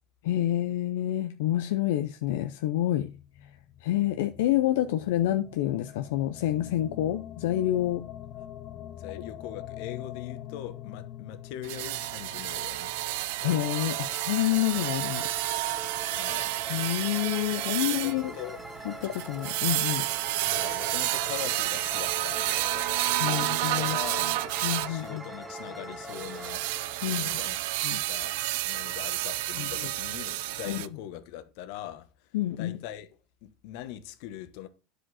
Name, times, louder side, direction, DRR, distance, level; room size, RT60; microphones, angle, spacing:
voice 1, 0.2-3.1 3.4-3.5 3.8-8.0 13.4-15.3 16.7-18.4 18.8-20.1 23.2-24.0 24.6-25.2 27.0-27.3 27.8-28.0 29.6-29.9 30.7-30.8 32.3-32.8, left 13 dB, 85° left, 0.5 m, -28 dB
sound 1, 2.7-14.6, left 11 dB, 45° left, 0.8 m, -45 dB
voice 2, 8.9-13.0 16.1-16.6 17.7-18.7 20.4-22.9 23.2-24.3 24.8-26.6 27.1-27.6 28.1-28.4 28.6-32.1 32.6-33.1 33.4-34.7, left 11 dB, 65° left, 1.1 m, -41 dB
sound 2, 11.6-25.0 26.1-30.9, right 17 dB, 75° right, 0.5 m, -30 dB
sound 3, 13.4-28.2, right 1 dB, 5° right, 1.1 m, -42 dB
10.0 x 5.0 x 4.1 m
supercardioid pair, 140°, 0 cm